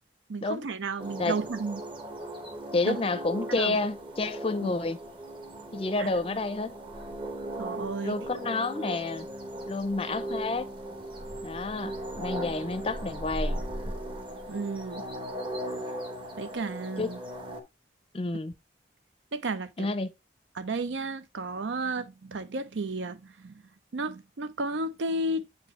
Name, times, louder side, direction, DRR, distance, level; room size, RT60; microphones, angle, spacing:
voice 1, 0.3-1.8 2.8-3.0 3.5-3.8 4.6-4.7 6.0-6.1 7.6-8.2 14.5-15.0 16.4-17.2 19.3-19.9 20.6-23.6 23.9-25.5, right 2 dB, 85° right, 0.6 m, -33 dB
sound 1, 1.0-17.6, right 1 dB, 25° right, 0.9 m, -38 dB
voice 2, 2.7-5.0 5.7-6.7 8.0-9.3 9.7-10.7 11.4-13.6 17.0-17.1 18.1-18.5 19.8-20.1, left 3 dB, 30° left, 0.5 m, -29 dB
7.5 x 4.3 x 3.0 m
head